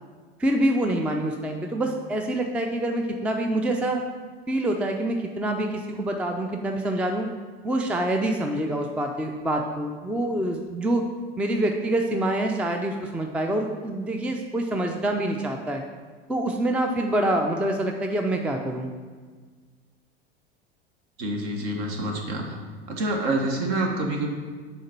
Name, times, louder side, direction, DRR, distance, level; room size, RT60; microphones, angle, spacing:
voice 1, 0.4-4.0 4.5-7.3 7.6-11.0 11.4-15.8 16.3-18.9, right 1 dB, 5° right, 3 dB, 0.4 m, -26 dB
voice 2, 21.2-22.6 22.9-24.3, right 1 dB, 55° right, 1 dB, 1.5 m, -27 dB
6.4 x 4.1 x 5.8 m, 1.5 s
hypercardioid pair, 85°, 33 cm